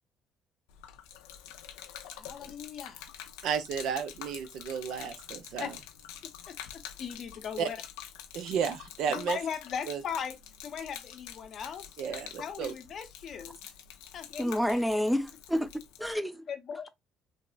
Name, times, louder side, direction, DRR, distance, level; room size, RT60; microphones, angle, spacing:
Gurgling / Liquid, 0.7-16.1, left 10 dB, 90° left, 0.4 m, -47 dB
voice 1, 2.0-3.1 5.6-5.8 6.5-7.8 9.1-10.4 10.6-13.7 14.1-15.0 16.5-16.9, left 7 dB, 55° left, 0.6 m, -39 dB
voice 2, 3.4-5.7 7.6-7.7 8.3-9.4 9.9-10.0 12.0-12.7, right 7 dB, 75° right, 0.5 m, -33 dB
voice 3, 14.4-15.7 16.0-16.4, equal, ahead, 0.4 m, -28 dB
3.4 x 2.0 x 2.3 m
supercardioid pair, 75°, 0 cm